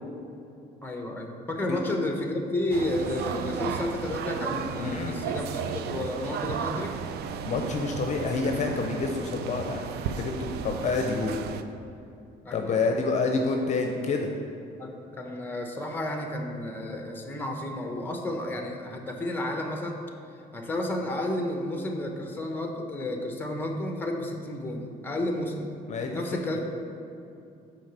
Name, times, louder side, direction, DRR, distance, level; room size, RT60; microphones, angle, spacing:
voice 1, 0.8-7.0 12.4-12.9 14.8-20.0 20.5-25.7 26.1-26.6, left 1 dB, 10° left, 3 dB, 1.0 m, -32 dB
sound 1, 2.7-11.6, right 7 dB, 70° right, 0.5 m, -34 dB
voice 2, 4.8-5.2 7.5-9.9 10.2-11.4 12.5-14.3 25.9-26.2 26.5-26.6, left 4 dB, 45° left, 3 dB, 0.7 m, -28 dB
6.2 x 4.9 x 6.8 m, 2.7 s
cardioid pair, 110°, 17 cm